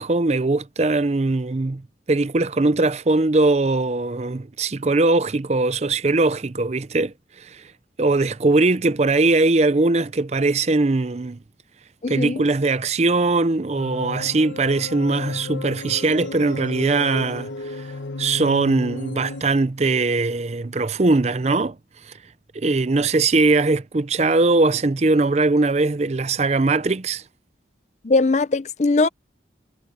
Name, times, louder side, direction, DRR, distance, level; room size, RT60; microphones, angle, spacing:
voice 1, 0.0-1.8 2.1-7.6 8.0-11.4 12.1-17.5 17.8-17.9 18.2-21.8 22.5-27.2, right 3 dB, 35° right, 0.5 m, -20 dB
voice 2, 12.0-12.4 28.0-29.1, left 3 dB, 40° left, 0.5 m, -20 dB
sound 1, 13.8-19.4, left 3 dB, 85° left, 1.3 m, -33 dB
head